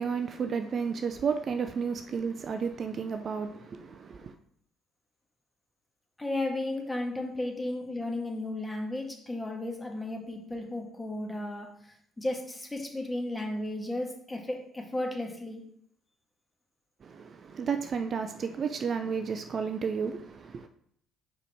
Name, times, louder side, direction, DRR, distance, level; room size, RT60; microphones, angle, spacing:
voice 1, 0.0-4.3 17.0-20.7, right 6 dB, 45° right, 0.5 m, -32 dB
voice 2, 6.2-11.7 12.2-15.6, left 1 dB, 15° left, 1.7 m, -34 dB
5.0 x 4.8 x 4.5 m
hypercardioid pair, 50°, 0 cm